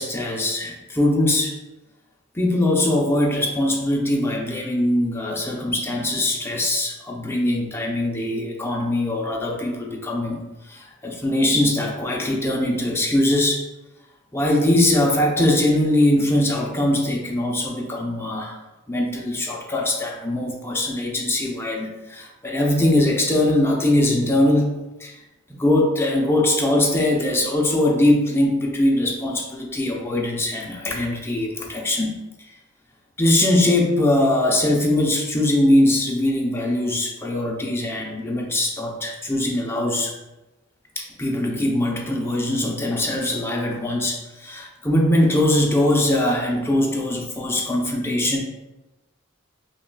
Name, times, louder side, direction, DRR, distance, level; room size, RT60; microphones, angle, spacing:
voice 1, 0.0-1.5 2.3-10.4 10.7-13.6 14.3-18.5 18.9-25.2 25.6-32.2 33.2-40.1 41.0-48.4, left 1 dB, 10° left, -1 dB, 0.5 m, -21 dB
5.6 x 2.4 x 2.2 m, 1.0 s
head